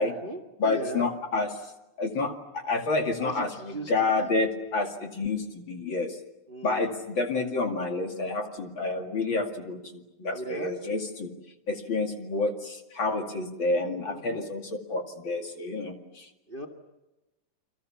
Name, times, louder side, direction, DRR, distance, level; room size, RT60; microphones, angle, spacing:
voice 1, 0.0-1.0 3.2-4.4 6.5-6.9 10.3-10.7 14.1-14.5 16.5-16.7, right 2 dB, 50° right, 5 dB, 0.6 m, -38 dB
voice 2, 0.6-1.6 2.0-6.2 6.6-11.3 11.7-16.3, left 3 dB, 35° left, 4 dB, 2.5 m, -29 dB
30.0 x 24.0 x 7.1 m, 1.0 s
omnidirectional pair, 4.3 m